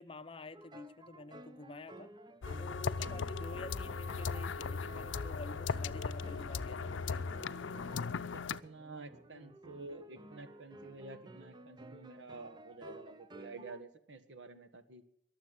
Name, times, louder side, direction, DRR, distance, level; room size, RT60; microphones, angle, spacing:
voice 1, 0.0-2.1 2.6-7.4 9.3-9.5, left 2 dB, 30° left, 0.7 m, -49 dB
sound 1, 0.5-13.8, right 1 dB, 25° right, 0.8 m, -53 dB
sound 2, 2.4-8.6, left 5 dB, 90° left, 0.5 m, -38 dB
voice 2, 3.0-3.3 8.3-15.0, right 3 dB, 70° right, 1.6 m, -50 dB
22.0 x 7.5 x 7.7 m
head